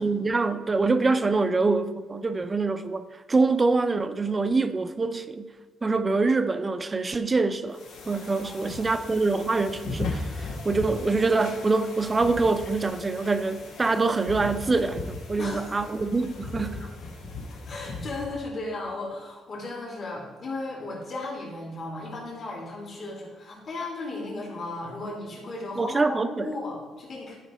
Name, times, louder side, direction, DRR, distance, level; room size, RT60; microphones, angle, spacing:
voice 1, 0.0-5.5 5.8-7.8 8.1-16.8 25.8-26.4, right 3 dB, 25° right, 0.5 m, -25 dB
sound 1, 7.7-18.4, left 3 dB, 85° left, 1.5 m, -37 dB
voice 2, 8.4-8.8 15.4-15.8 16.6-16.9 17.7-27.3, left 2 dB, 50° left, 2.6 m, -35 dB
11.5 x 5.1 x 4.3 m
cardioid pair, 90°, 0 cm